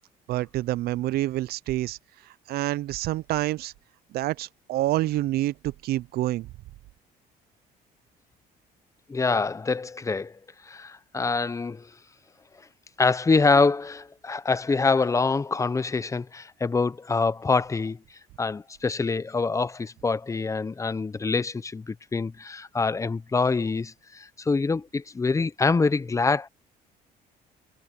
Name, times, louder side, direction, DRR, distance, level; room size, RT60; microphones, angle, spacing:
voice 1, 0.3-2.0 2.5-3.7 4.1-6.5, right 15 dB, 70° right, 0.4 m, -27 dB
voice 2, 9.1-10.4 10.7-11.9 13.0-18.0 18.4-26.5, left 4 dB, 20° left, 0.7 m, -25 dB
cardioid pair, 110°, 17 cm